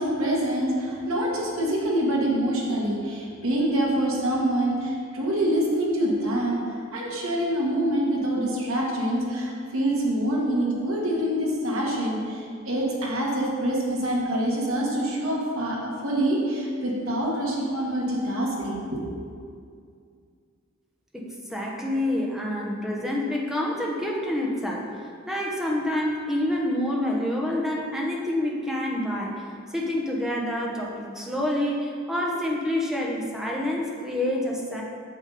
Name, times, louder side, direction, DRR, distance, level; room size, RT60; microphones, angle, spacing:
voice 1, 0.0-6.6 6.9-19.1, right 1 dB, 80° right, -3 dB, 1.9 m, -25 dB
voice 2, 21.1-34.8, left 1 dB, ahead, -2 dB, 1.0 m, -28 dB
8.3 x 7.1 x 4.2 m, 2.2 s
head